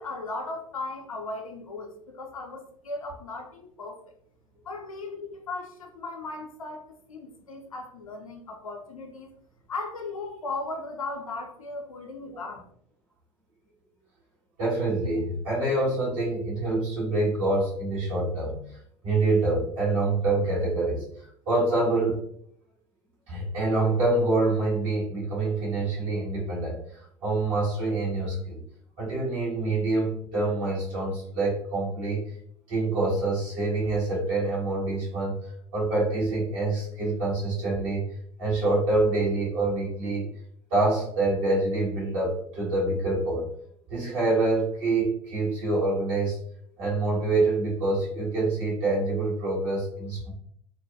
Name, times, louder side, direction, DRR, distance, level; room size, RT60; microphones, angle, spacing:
voice 1, 0.0-4.0 4.7-9.3 9.7-12.6, left 3 dB, 85° left, 2 dB, 0.5 m, -37 dB
voice 2, 14.6-18.6 19.0-22.2 23.3-26.8 27.2-28.6 29.0-32.3 32.7-35.3 35.7-38.0 38.4-40.3 40.7-43.5 43.9-46.4 46.8-50.3, right 2 dB, 65° right, -6 dB, 1.5 m, -26 dB
2.7 x 2.2 x 2.6 m, 0.67 s
figure-of-eight pair, 65°, 17 cm